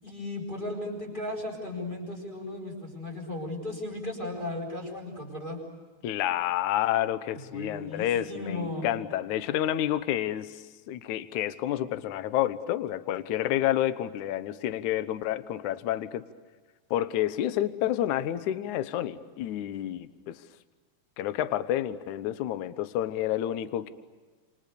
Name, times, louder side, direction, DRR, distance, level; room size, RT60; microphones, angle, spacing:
voice 1, 0.0-5.6 7.5-8.9, left 2 dB, 10° left, 0 dB, 8.1 m, -36 dB
voice 2, 6.0-16.2 16.9-20.4 21.2-23.9, left 12 dB, 65° left, 13 dB, 2.2 m, -29 dB
30.0 x 27.5 x 6.9 m, 1.3 s
omnidirectional pair, 4.3 m